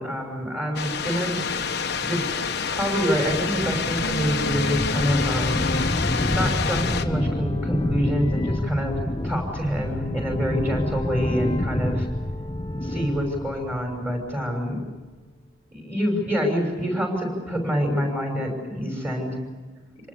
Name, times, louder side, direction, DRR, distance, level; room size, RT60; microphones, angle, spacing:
voice 1, 0.0-1.4 1.9-2.3 2.6-5.6 6.3-9.0 9.2-12.1 12.8-14.8 15.7-19.4, equal, 10° right, 2 dB, 6.0 m, -26 dB
sound 1, 0.8-7.0, left 5 dB, 50° left, 1.2 m, -27 dB
sound 2, 2.5-14.6, left 1 dB, 20° left, 0.7 m, -28 dB
27.0 x 19.5 x 8.6 m, 1.3 s
head